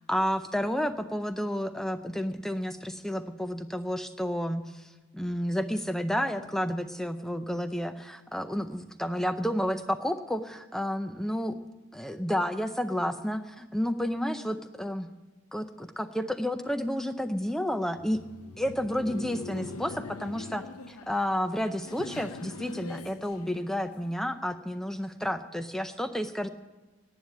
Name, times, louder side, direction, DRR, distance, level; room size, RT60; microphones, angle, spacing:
voice 1, 0.1-11.6 11.9-15.1 15.5-18.2 18.6-26.5, equal, ahead, 10 dB, 0.5 m, -31 dB
Laughter, 17.8-24.1, left 3 dB, 85° left, 0.6 m, -43 dB
10.5 x 9.0 x 8.6 m, 1.2 s
head